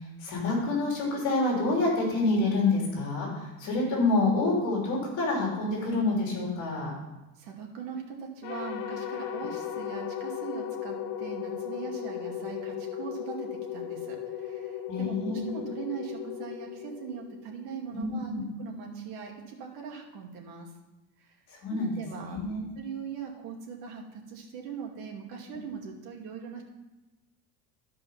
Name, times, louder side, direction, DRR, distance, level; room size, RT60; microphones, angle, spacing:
voice 1, 0.2-6.9 14.9-15.6 17.9-18.4 21.5-21.9 22.2-22.6, left 2 dB, 45° left, -2 dB, 3.4 m, -27 dB
voice 2, 7.4-18.3 18.6-20.7 21.2-21.4 21.7-22.4 22.8-26.6, right 6 dB, 75° right, 0 dB, 2.4 m, -40 dB
sound 1, 8.4-17.7, left 10 dB, 85° left, 1.2 m, -36 dB
12.5 x 5.4 x 5.7 m, 1.1 s
cardioid pair, 170°, 42 cm